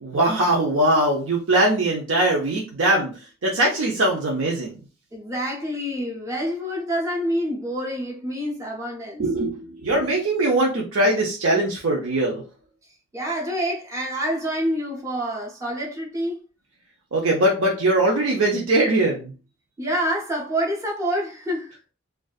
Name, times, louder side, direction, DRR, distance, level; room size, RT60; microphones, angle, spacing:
voice 1, 0.0-4.7 9.2-12.4 17.1-19.3, right 1 dB, 80° right, 0.6 m, -21 dB
voice 2, 5.1-9.2 13.1-16.4 19.8-21.8, equal, 15° right, 0.5 m, -27 dB
2.5 x 2.3 x 2.3 m
head